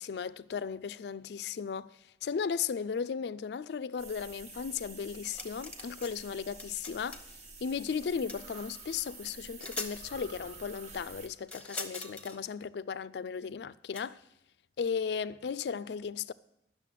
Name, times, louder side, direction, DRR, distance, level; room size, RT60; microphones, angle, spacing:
voice 1, 0.0-7.2 7.6-14.2 14.8-16.3, left 6 dB, 75° left, 0.4 m, -36 dB
sound 1, 4.0-11.3, right 4 dB, 40° right, 1.2 m, -49 dB
sound 2, 5.2-6.1 6.4-7.3 8.3-8.4 9.3-9.4 9.6-9.9 11.5-12.4 13.9-14.0, left 3 dB, 10° left, 0.8 m, -41 dB
Breathing, 7.1-9.3 9.6-9.7 10.0-11.7, right 3 dB, 75° right, 1.5 m, -57 dB
11.0 x 6.6 x 7.5 m
head